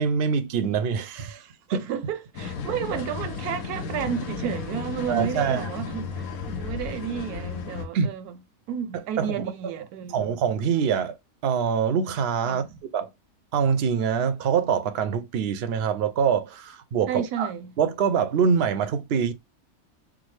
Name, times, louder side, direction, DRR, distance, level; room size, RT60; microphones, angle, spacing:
voice 1, 0.0-1.8 5.1-5.7 7.9-8.1 8.9-9.4 10.1-11.2 11.4-12.7 12.9-13.1 13.5-17.5 17.8-19.3, right 7 dB, 60° right, 0.6 m, -24 dB
voice 2, 1.7-8.4 8.7-10.3 12.5-12.8 17.1-17.7, right 8 dB, 85° right, 1.1 m, -32 dB
sound 1, 2.3-7.9, left 5 dB, 75° left, 1.2 m, -33 dB
4.8 x 2.0 x 3.2 m
omnidirectional pair, 1.6 m